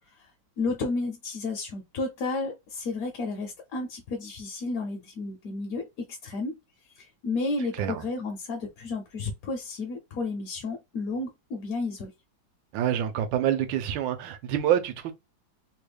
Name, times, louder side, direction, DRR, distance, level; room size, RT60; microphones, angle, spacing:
voice 1, 0.6-6.6 6.9-12.1, left 3 dB, 65° left, 0.9 m, -32 dB
voice 2, 12.7-15.1, right 10 dB, 90° right, 1.4 m, -26 dB
3.3 x 2.2 x 3.3 m
omnidirectional pair, 2.0 m